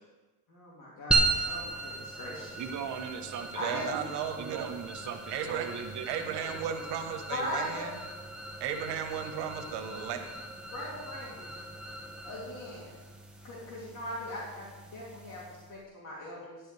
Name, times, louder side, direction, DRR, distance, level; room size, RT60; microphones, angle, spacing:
voice 1, 0.5-2.6 3.5-4.0 7.3-7.8 10.7-11.5 12.2-12.9 13.4-14.7 14.9-16.7, left 1 dB, 45° left, -6 dB, 3.2 m, -39 dB
sound 1, 1.1-15.8, right 3 dB, ahead, 1.3 m, -36 dB
voice 2, 2.5-3.9 4.4-6.8, right 7 dB, 45° right, 5 dB, 1.2 m, -39 dB
voice 3, 3.6-4.7 5.3-5.7 6.1-8.0 8.6-10.2, right 8 dB, 70° right, 6 dB, 1.5 m, -35 dB
13.0 x 11.0 x 3.5 m, 1.2 s
cardioid pair, 135°, 42 cm